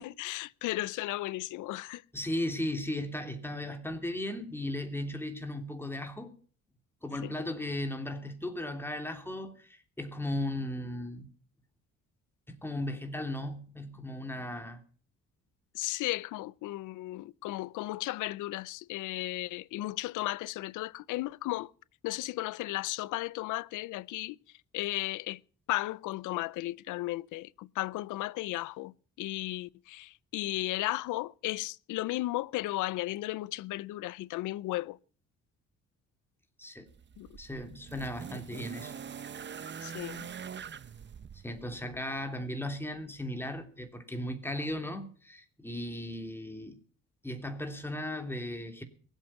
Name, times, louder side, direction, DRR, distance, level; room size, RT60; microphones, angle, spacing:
voice 1, 0.0-2.0 7.2-7.3 15.7-21.7 22.0-24.4 24.7-25.4 25.7-35.0 37.2-37.3 39.8-40.3, left 18 dB, 90° left, 0.6 m, -35 dB
voice 2, 2.1-6.3 7.0-11.3 12.5-14.8 36.6-36.9 37.4-38.9 41.4-46.8 47.2-48.8, left 1 dB, 5° left, 3.1 m, -36 dB
sound 1, 36.9-42.1 43.2-43.3, right 7 dB, 35° right, 0.8 m, -44 dB
22.5 x 8.3 x 5.6 m
cardioid pair, 90°, 30 cm